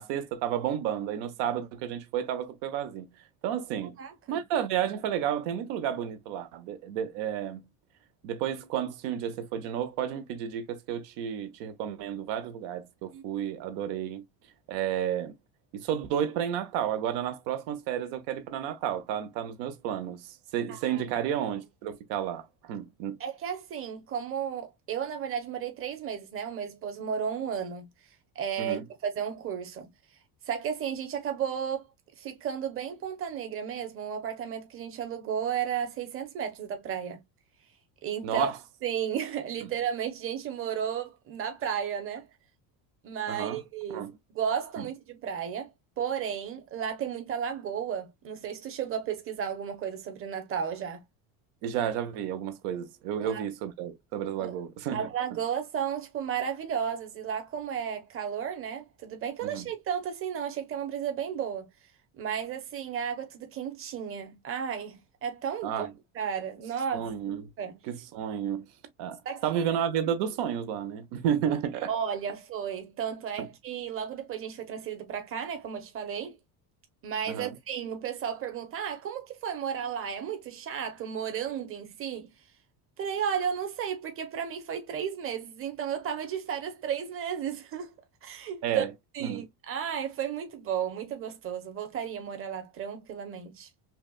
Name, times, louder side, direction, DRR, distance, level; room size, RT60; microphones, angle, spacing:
voice 1, 0.0-3.1 3.4-4.0 4.3-7.6 8.2-14.2 14.7-15.3 15.7-23.2 28.6-28.8 38.2-38.6 39.6-39.7 43.3-43.6 43.9-44.1 44.8-44.9 51.6-55.1 59.4-59.6 65.6-65.9 66.9-67.4 67.9-68.6 69.0-71.9 77.3-77.5 88.6-88.9 89.2-89.4, right 9 dB, 80° right, 0.9 m, -31 dB
voice 2, 4.0-4.4 13.1-13.2 20.7-21.0 23.2-27.9 28.3-29.9 30.5-31.8 32.2-37.2 38.0-38.5 38.8-42.3 43.0-45.7 46.0-51.0 53.2-53.4 54.4-54.6 54.9-61.7 62.2-65.9 66.1-67.1 67.6-67.8 69.2-69.6 71.9-76.4 77.0-82.3 83.0-87.9 88.2-88.8 89.1-93.7, right 8 dB, 35° right, 1.1 m, -33 dB
5.7 x 2.4 x 2.3 m
cardioid pair, 150°, 40 cm